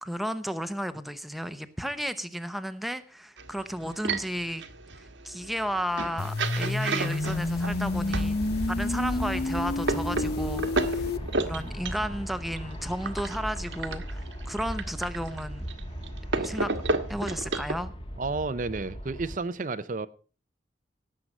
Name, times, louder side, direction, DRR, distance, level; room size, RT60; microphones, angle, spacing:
voice 1, 0.0-4.6 5.0-8.4 8.7-11.1 11.4-15.6 16.3-16.7 17.1-17.9, equal, ahead, 10 dB, 0.8 m, -33 dB
sound 1, 3.4-8.7 9.3-17.7, right 3 dB, 80° right, 1.4 m, -33 dB
sound 2, 6.2-11.2, left 2 dB, 55° left, 0.7 m, -30 dB
Aircraft, 7.2-19.4, equal, 30° left, 1.4 m, -37 dB
voice 2, 18.2-20.1, right 3 dB, 45° right, 13 dB, 0.6 m, -31 dB
18.0 x 7.6 x 5.4 m, 0.39 s
head